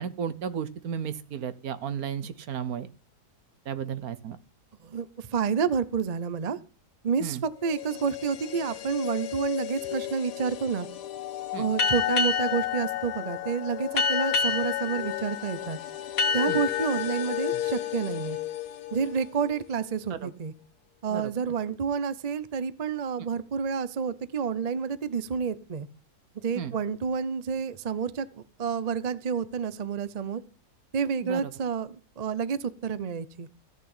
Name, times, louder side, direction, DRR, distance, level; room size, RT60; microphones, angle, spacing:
voice 1, 0.0-2.9 3.7-4.4 7.2-7.4 11.5-11.7 16.5-16.6 20.1-20.3 21.1-21.3 26.5-26.7 31.2-31.5, right 8 dB, 65° right, 13 dB, 1.4 m, -34 dB
voice 2, 4.8-6.6 7.0-10.9 11.6-15.8 16.3-18.4 18.9-20.5 21.0-25.9 26.3-30.4 30.9-33.5, right 6 dB, 45° right, 16 dB, 0.5 m, -29 dB
sound 1, 7.6-19.7 20.0-20.1, left 15 dB, 90° left, 1.5 m, -35 dB
sound 2, 11.8-19.1, left 6 dB, 60° left, 1.6 m, -30 dB
15.0 x 6.5 x 8.8 m, 0.38 s
omnidirectional pair, 1.7 m